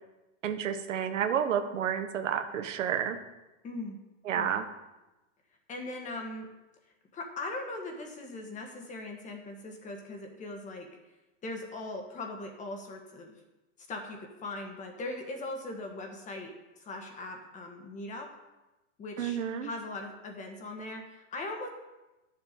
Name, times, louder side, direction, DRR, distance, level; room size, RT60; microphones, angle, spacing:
voice 1, 0.4-3.2 4.2-4.7 19.2-19.7, right 8 dB, 85° right, 8 dB, 1.2 m, -30 dB
voice 2, 3.6-4.0 4.3-4.6 5.7-6.5 7.1-10.9 11.4-13.3 13.9-18.3 19.0-21.7, left 2 dB, 20° left, 3 dB, 1.6 m, -40 dB
10.5 x 7.1 x 5.2 m, 1.0 s
hypercardioid pair, 140°, 37 cm